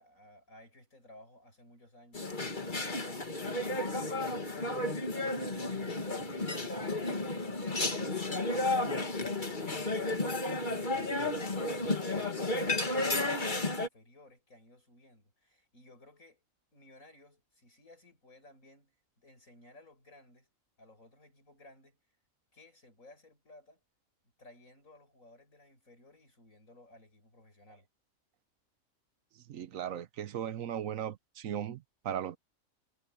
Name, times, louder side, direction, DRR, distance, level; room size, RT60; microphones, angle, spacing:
voice 1, 0.0-7.2 7.4-16.4 16.7-20.5 20.8-22.0 22.5-23.8 24.4-27.9, left 1 dB, 70° left, 8.6 m, -57 dB
sound 1, 2.1-13.9, left 2 dB, 35° left, 2.0 m, -32 dB
voice 2, 29.5-32.4, right 9 dB, 70° right, 1.1 m, -37 dB
omnidirectional pair, 1.5 m